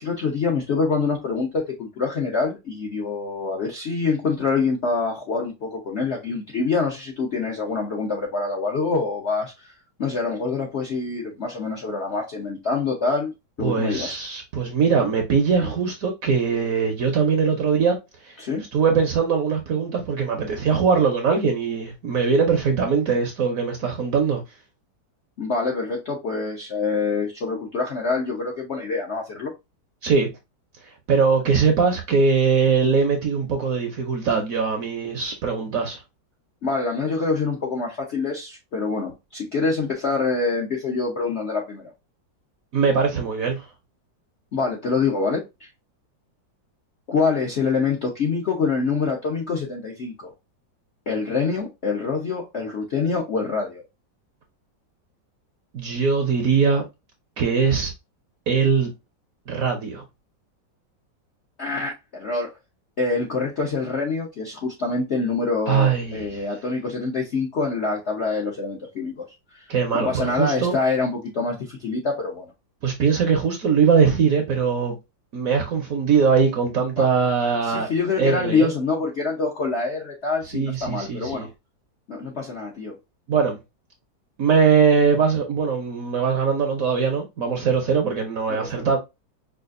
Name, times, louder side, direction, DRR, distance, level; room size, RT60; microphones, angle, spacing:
voice 1, 0.0-9.7 10.0-13.3 13.6-14.2 15.6-15.7 18.4-18.7 25.4-29.5 36.6-41.9 44.5-45.7 47.1-50.3 51.1-53.8 61.6-62.5 63.0-69.2 69.5-69.6 69.9-72.5 77.0-77.1 77.7-81.5 82.1-83.0 88.5-88.9, left 4 dB, 60° left, 0.7 m, -25 dB
voice 2, 13.6-17.9 18.2-18.4 18.7-24.4 30.0-30.3 31.1-36.0 42.7-43.6 55.7-56.8 57.4-57.9 58.5-58.9 59.5-60.0 65.7-66.4 69.7-70.7 72.8-74.9 75.3-77.9 78.2-78.7 80.5-81.5 83.3-83.6 84.4-89.0, right 5 dB, 60° right, 0.9 m, -21 dB
4.9 x 2.4 x 2.4 m
omnidirectional pair, 2.1 m